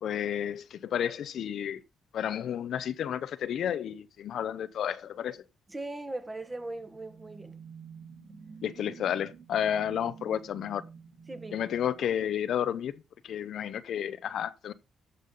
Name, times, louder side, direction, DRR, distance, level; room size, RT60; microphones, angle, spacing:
voice 1, 0.0-1.8 2.1-5.4 8.6-10.8 11.5-12.9 13.2-14.7, left 9 dB, 65° left, 0.6 m, -31 dB
voice 2, 5.7-7.6 11.3-11.6, right 2 dB, 20° right, 1.5 m, -39 dB
sound 1, 6.5-12.8, right 6 dB, 50° right, 3.0 m, -50 dB
14.0 x 5.4 x 4.0 m
cardioid pair, 95°, 0 cm